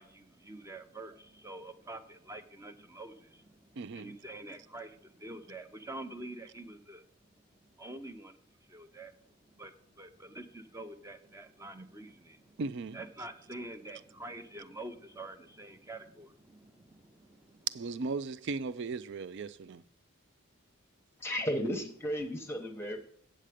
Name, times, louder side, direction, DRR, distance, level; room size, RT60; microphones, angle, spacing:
voice 1, 0.0-7.1 7.8-8.4 8.7-9.2 9.5-12.6 12.9-17.7, right 2 dB, 15° right, 0.7 m, -46 dB
voice 2, 3.8-4.1 12.6-13.0 17.7-19.8, right 3 dB, 55° right, 0.4 m, -37 dB
voice 3, 21.2-23.0, equal, 10° left, 0.9 m, -34 dB
9.0 x 7.6 x 5.0 m
head